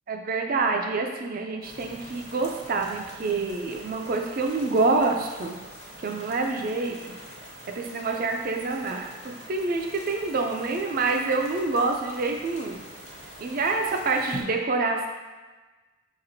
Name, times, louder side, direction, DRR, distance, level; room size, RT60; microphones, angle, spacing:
voice 1, 0.1-5.6 6.0-7.2 7.8-12.8 13.4-15.1, right 3 dB, 45° right, 3 dB, 0.4 m, -27 dB
sound 1, 1.6-14.4, equal, 30° left, 0.6 m, -44 dB
5.8 x 2.9 x 2.7 m, 1.3 s
head